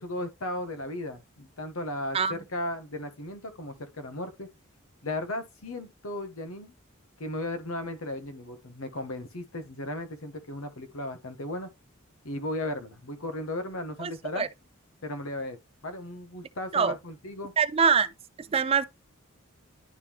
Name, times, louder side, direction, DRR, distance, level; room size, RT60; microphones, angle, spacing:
voice 1, 0.0-4.5 5.0-6.7 7.2-11.7 12.2-14.5 15.0-15.6 15.8-17.5, left 1 dB, 75° left, 1.1 m, -36 dB
voice 2, 14.0-14.5 16.7-17.0 17.6-18.1 18.5-18.8, right 6 dB, 30° right, 0.3 m, -24 dB
10.5 x 3.6 x 3.0 m
head